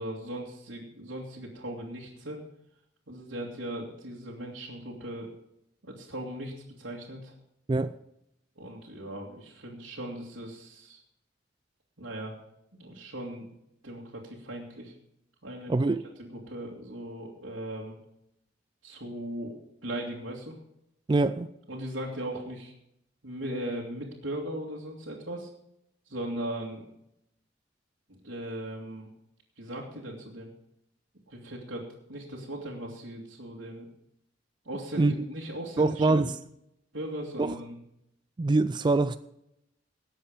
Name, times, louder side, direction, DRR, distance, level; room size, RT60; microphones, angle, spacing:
voice 1, 0.0-2.4 3.1-5.3 5.8-7.3 8.6-11.0 12.0-12.3 12.7-13.5 13.8-14.9 15.4-15.9 16.2-18.0 18.8-19.5 19.8-20.5 21.7-22.7 23.2-25.5 26.1-26.9 28.1-29.1 29.6-30.5 31.3-31.8 32.1-33.9 34.6-36.3 36.9-37.8, right 1 dB, 90° right, 2.4 m, -38 dB
voice 2, 15.7-16.0 21.1-21.5 35.0-35.3 35.8-36.3 37.4-37.5 38.4-39.2, right 3 dB, 25° right, 0.3 m, -24 dB
19.0 x 7.3 x 5.1 m
head